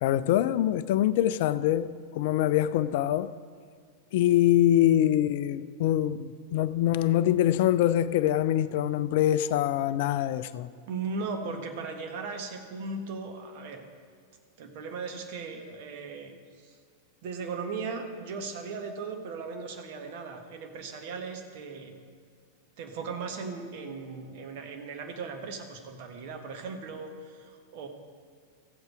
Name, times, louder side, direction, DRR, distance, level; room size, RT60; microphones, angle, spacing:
voice 1, 0.0-3.4 4.1-10.7, left 12 dB, 50° left, 0.3 m, -24 dB
voice 2, 10.9-13.8 14.6-16.8 17.2-21.9 22.8-27.9, right 4 dB, 50° right, 1.4 m, -37 dB
15.0 x 8.0 x 4.7 m
figure-of-eight pair, 90°, 0 cm